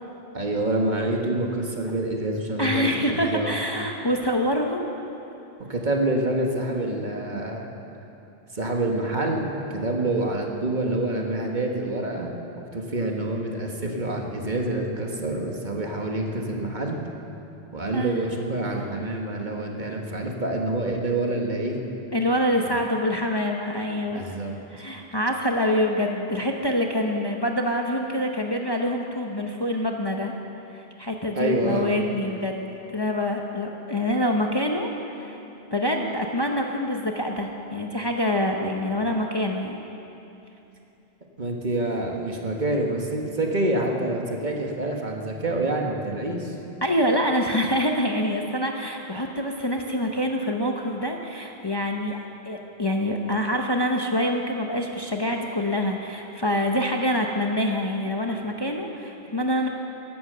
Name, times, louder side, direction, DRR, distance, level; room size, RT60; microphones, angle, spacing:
voice 1, 0.3-3.0 3.3-3.5 5.7-7.7 8.5-17.0 17.7-21.8 22.7-22.8 24.1-24.5 31.3-32.0 41.4-46.5, right 2 dB, 45° right, 1 dB, 1.6 m, -27 dB
voice 2, 2.6-4.9 17.9-18.2 22.1-24.3 24.7-30.3 30.7-35.4 35.7-39.8 46.8-52.2 52.5-59.7, left 1 dB, 25° left, 2 dB, 0.8 m, -26 dB
15.0 x 11.5 x 6.7 m, 2.9 s
omnidirectional pair, 1.1 m